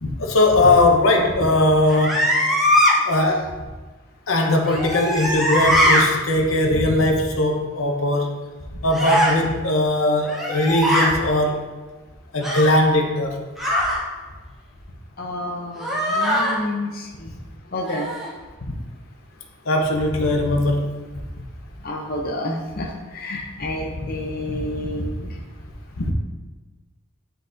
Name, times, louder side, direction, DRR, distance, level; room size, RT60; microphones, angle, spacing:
voice 1, 0.0-2.3 3.0-3.5 4.3-8.4 8.8-11.6 12.3-13.4 18.7-18.8 19.6-21.0 24.5-25.3 26.0-26.1, left 2 dB, 85° left, 2 dB, 0.8 m, -20 dB
sound 1, 1.9-2.9 4.6-6.0 8.9-9.4 10.2-11.1 12.4-12.8 13.6-14.0 15.8-16.6 17.8-18.3, equal, ahead, 0.9 m, -20 dB
voice 2, 15.2-17.4 17.7-18.1 21.8-25.1, left 1 dB, 45° left, 0 dB, 0.7 m, -29 dB
10.0 x 4.0 x 2.6 m, 1.3 s
head